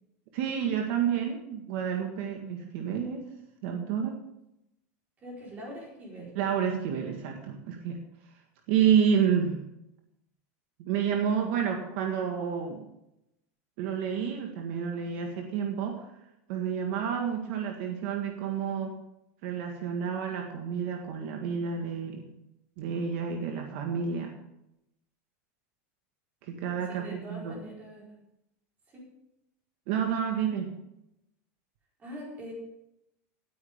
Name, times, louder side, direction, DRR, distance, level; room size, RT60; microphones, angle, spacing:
voice 1, 0.3-3.2 3.6-4.2 6.3-8.0 8.7-9.6 10.8-12.8 13.8-16.0 16.5-19.0 19.4-22.2 22.8-24.3 26.4-27.5 29.9-30.7, right 7 dB, 50° right, 2 dB, 1.7 m, -29 dB
voice 2, 5.2-6.3 26.9-28.1 28.9-29.0 32.0-32.5, equal, 20° right, -3 dB, 4.3 m, -42 dB
17.5 x 9.6 x 3.6 m, 0.84 s
supercardioid pair, 180°, 8 cm